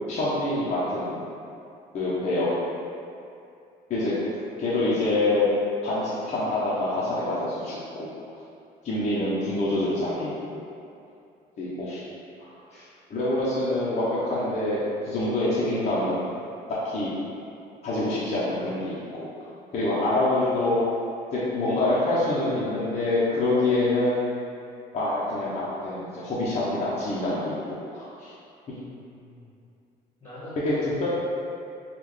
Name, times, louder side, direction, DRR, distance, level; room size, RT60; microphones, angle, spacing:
voice 1, 0.1-1.2 1.9-2.5 3.9-4.1 4.6-5.5 5.8-8.1 8.8-10.6 11.6-12.1 12.4-12.5 13.1-14.8 15.0-16.3 16.8-17.1 17.8-19.3 19.7-20.8 21.3-24.3 24.9-28.3 30.6-31.1, left 2 dB, 40° left, -9 dB, 0.7 m, -26 dB
voice 2, 28.7-29.5 30.2-31.1, left 1 dB, 15° left, -11 dB, 1.4 m, -43 dB
3.5 x 2.4 x 3.2 m, 2.5 s
cardioid pair, 110°, 17 cm